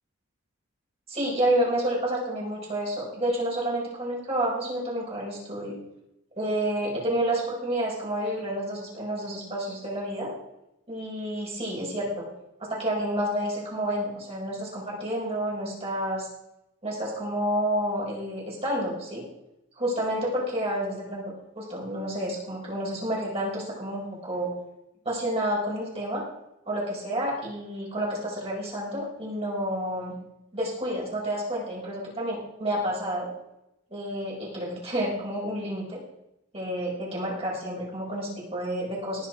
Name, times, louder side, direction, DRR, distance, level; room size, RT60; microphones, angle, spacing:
voice 1, 1.1-5.7 6.4-10.3 10.9-12.3 12.6-16.3 16.8-19.3 19.8-21.2 21.6-24.5 25.0-26.2 26.7-30.2 30.5-33.3 33.9-36.0 36.5-39.3, right 1 dB, 30° right, -4 dB, 5.7 m, -29 dB
18.5 x 9.7 x 4.7 m, 0.87 s
head